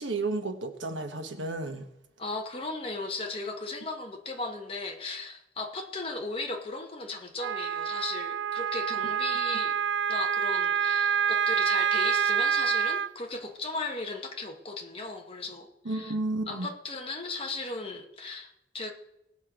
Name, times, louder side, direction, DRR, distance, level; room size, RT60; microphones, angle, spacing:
voice 1, 0.0-1.9 15.8-16.7, right 2 dB, 85° right, 1.2 m, -32 dB
voice 2, 2.2-9.8 10.1-16.1 16.5-18.9, left 3 dB, 30° left, 1.2 m, -36 dB
Wind instrument woodwind instrument, 7.4-13.1, right 7 dB, 70° right, 0.3 m, -27 dB
18.5 x 6.5 x 5.1 m
head